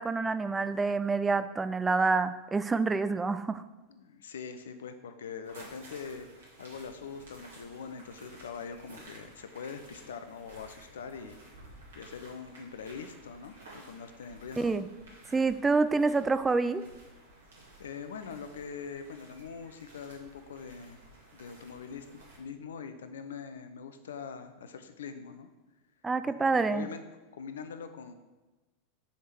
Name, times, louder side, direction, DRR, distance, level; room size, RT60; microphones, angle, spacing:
voice 1, 0.0-3.6 14.6-14.9 15.3-16.8 26.0-26.9, right 4 dB, 15° right, 12 dB, 0.3 m, -27 dB
voice 2, 3.9-11.4 12.0-14.9 17.8-21.0 21.3-25.5 26.4-27.0 27.3-28.1, left 6 dB, 75° left, 9 dB, 0.6 m, -43 dB
sound 1, 5.4-22.4, right 2 dB, 75° right, 2.1 m, -53 dB
6.4 x 3.7 x 5.9 m, 1.1 s
hypercardioid pair, 90°, 0 cm